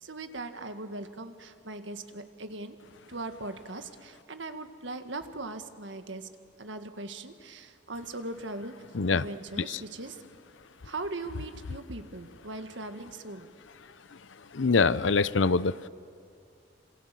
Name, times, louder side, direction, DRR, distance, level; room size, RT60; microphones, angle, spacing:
voice 1, 0.0-2.8 3.1-6.3 6.6-8.7 9.1-10.2 10.8-13.5, right 2 dB, 75° right, 8 dB, 1.8 m, -39 dB
voice 2, 14.5-15.7, left 4 dB, 75° left, 16 dB, 0.7 m, -24 dB
27.5 x 27.0 x 7.7 m, 2.5 s
head